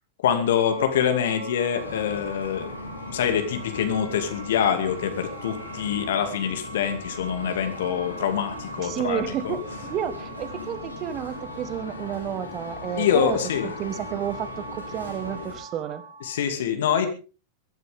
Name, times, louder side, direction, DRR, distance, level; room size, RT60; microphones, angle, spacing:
voice 1, 0.2-2.7 3.1-9.6 13.0-13.7 16.2-17.1, left 8 dB, 60° left, 7 dB, 2.5 m, -25 dB
sound 1, 0.5-16.5, right 2 dB, 90° right, 5.9 m, -42 dB
sound 2, 1.7-15.6, left 3 dB, 80° left, 4.4 m, -39 dB
voice 2, 8.8-9.6 9.9-13.4 13.6-16.0, right 10 dB, 35° right, 13 dB, 1.5 m, -31 dB
22.5 x 13.5 x 3.7 m, 0.34 s
figure-of-eight pair, 90°, 0 cm